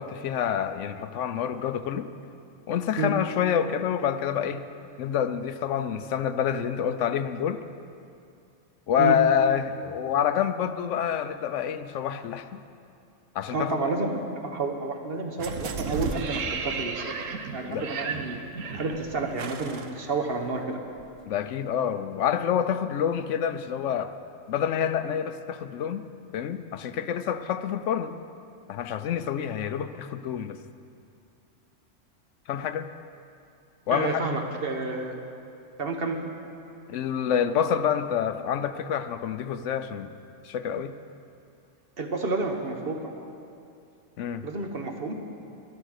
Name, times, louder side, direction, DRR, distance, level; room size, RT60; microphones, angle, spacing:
voice 1, 0.0-2.1 2.7-4.6 5.0-7.6 8.9-12.6 13.3-13.8 17.7-17.8 21.3-24.1 24.5-26.1 26.3-28.2 28.7-30.6 32.5-32.9 33.9-34.2 36.9-40.1 40.4-40.9 44.2-44.5, left 8 dB, 75° left, 10 dB, 0.9 m, -27 dB
voice 2, 13.5-17.2 17.5-18.4 18.7-20.8 33.9-35.2 35.8-36.2 42.0-43.2 44.4-45.2, right 3 dB, 50° right, 4 dB, 1.2 m, -30 dB
sound 1, 15.4-20.6 21.0-21.1, right 5 dB, 90° right, 1.2 m, -34 dB
12.0 x 11.5 x 6.5 m, 2.5 s
omnidirectional pair, 1.3 m